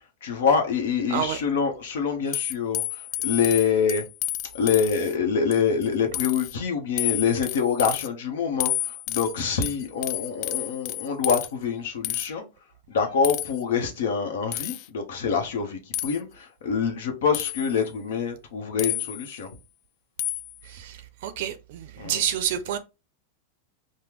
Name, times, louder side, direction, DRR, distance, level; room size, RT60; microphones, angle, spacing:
voice 1, 0.2-2.8 3.2-4.0 4.5-8.7 9.1-12.4 12.9-16.3 16.6-19.5 22.0-22.3, left 6 dB, 75° left, 0.9 m, -25 dB
throwing knives - bounce, 2.3-5.1 5.5-5.9 6.1-6.5 7.0-8.1 8.6-11.5 12.0-12.3 13.2-13.6 14.5-14.9 15.9-16.2 17.3-17.8 18.8-19.4 20.2-20.6, left 15 dB, 50° left, 0.3 m, -30 dB
voice 2, 21.2-21.5 22.0-22.8, right 10 dB, 65° right, 0.4 m, -26 dB
3.4 x 2.1 x 3.0 m
hypercardioid pair, 125°, 0 cm